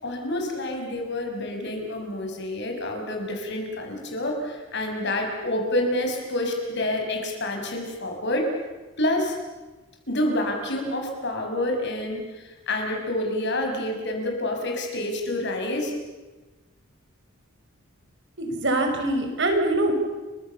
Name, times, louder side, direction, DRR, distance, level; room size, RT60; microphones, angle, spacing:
voice 1, 0.0-8.5 9.0-9.4 10.1-15.9, left 1 dB, 55° left, 3 dB, 6.2 m, -28 dB
voice 2, 18.4-19.9, right 1 dB, 60° right, 4 dB, 5.3 m, -23 dB
30.0 x 24.5 x 7.0 m, 1.2 s
head